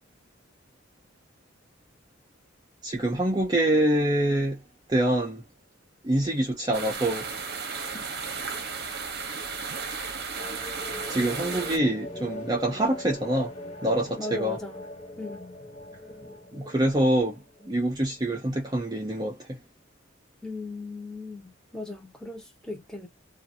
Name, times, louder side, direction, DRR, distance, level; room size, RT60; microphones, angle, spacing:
voice 1, 2.8-4.6 4.9-5.4 6.0-7.3 10.8-13.5 13.8-14.6 16.5-19.6, right 1 dB, 20° right, 0.6 m, -25 dB
sound 1, 6.7-11.8, right 5 dB, 55° right, 0.8 m, -34 dB
sound 2, 10.4-18.3, left 1 dB, 35° left, 1.3 m, -41 dB
voice 2, 14.2-14.9 15.2-15.5 20.4-23.1, left 2 dB, 5° left, 0.9 m, -38 dB
2.6 x 2.5 x 2.5 m
head